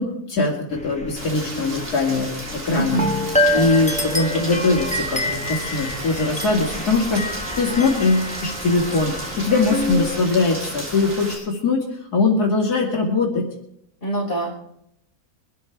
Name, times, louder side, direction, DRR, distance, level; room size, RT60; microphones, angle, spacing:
voice 1, 0.0-3.0 3.5-11.8 12.1-13.5, left 3 dB, 90° left, -1 dB, 2.8 m, -21 dB
sound 1, 0.7-10.2, left 1 dB, 5° left, 1.0 m, -27 dB
Rain, 1.2-11.3, right 1 dB, 50° right, 3.2 m, -34 dB
voice 2, 2.7-3.1 3.4-3.7 7.7-7.9 14.0-14.5, right 2 dB, 35° left, -3 dB, 5.3 m, -26 dB
23.0 x 12.5 x 3.5 m, 0.76 s
omnidirectional pair, 1.6 m